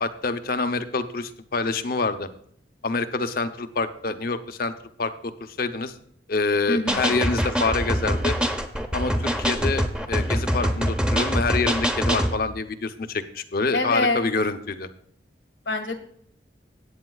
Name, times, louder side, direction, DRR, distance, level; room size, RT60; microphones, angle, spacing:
voice 1, 0.0-2.3 2.8-4.7 5.0-5.3 5.6-5.9 6.3-8.4 8.9-14.9, left 3 dB, 55° left, 9 dB, 0.8 m, -26 dB
voice 2, 6.7-7.1 13.7-14.2 15.6-16.0, left 2 dB, 85° left, 5 dB, 1.7 m, -25 dB
sound 1, 6.9-12.4, equal, 5° right, 0.8 m, -24 dB
17.5 x 8.7 x 2.4 m, 0.67 s
head